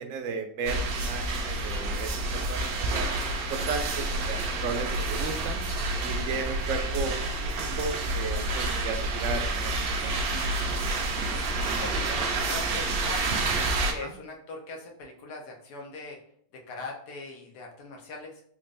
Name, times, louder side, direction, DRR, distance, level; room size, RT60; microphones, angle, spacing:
voice 1, 0.0-5.6 6.0-9.7 10.0-10.1 14.0-14.1, right 5 dB, 65° right, 6 dB, 0.8 m, -35 dB
sound 1, 0.7-13.9, right 2 dB, 85° right, 0.5 m, -29 dB
voice 2, 11.3-13.3 13.9-16.2 16.5-18.4, left 3 dB, 90° left, 1 dB, 1.4 m, -41 dB
3.7 x 2.5 x 3.2 m, 0.63 s
omnidirectional pair, 1.7 m